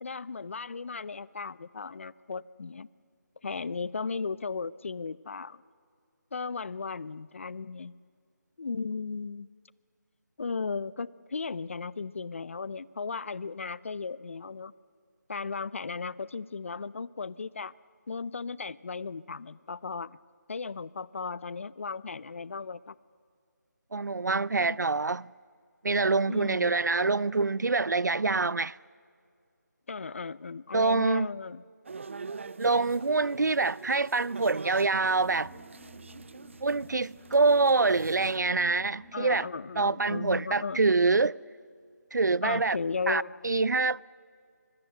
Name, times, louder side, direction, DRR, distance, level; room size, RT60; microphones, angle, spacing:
voice 1, 0.0-2.9 3.4-5.6 6.3-7.9 8.6-9.5 10.4-14.7 15.3-17.7 18.1-20.2 20.5-23.0 24.7-24.8 26.3-26.8 29.9-31.6 39.1-40.8 42.4-43.4, left 4 dB, 45° left, 0.5 m, -36 dB
voice 2, 23.9-25.3 25.8-28.8 30.7-31.3 32.6-35.5 36.6-39.5 39.8-41.4 42.1-42.8 43.1-44.0, right 3 dB, 85° right, 0.5 m, -25 dB
sound 1, 31.8-38.4, right 4 dB, 45° right, 0.6 m, -44 dB
sound 2, 35.0-42.5, left 1 dB, 5° right, 1.9 m, -56 dB
25.0 x 21.5 x 8.0 m
figure-of-eight pair, 165°, 9 cm